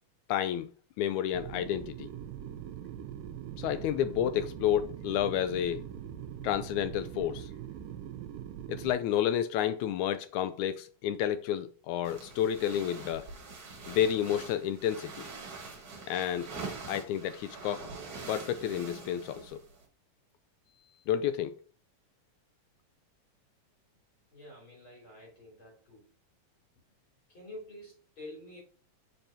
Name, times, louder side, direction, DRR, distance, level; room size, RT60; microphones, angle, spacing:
voice 1, 0.3-0.7 1.0-2.1 3.6-5.8 6.4-7.5 8.7-13.3 13.9-15.2 16.1-16.5 16.9-17.9 18.3-19.6 21.1-21.5, left 10 dB, 80° left, 1.7 m, -30 dB
sound 1, 1.3-8.9, right 10 dB, 85° right, 2.3 m, -42 dB
sound 2, 12.0-19.9, right 4 dB, 40° right, 2.6 m, -44 dB
voice 2, 24.3-26.1 27.3-28.6, left 1 dB, 40° left, 3.8 m, -48 dB
7.3 x 5.4 x 2.7 m
omnidirectional pair, 3.8 m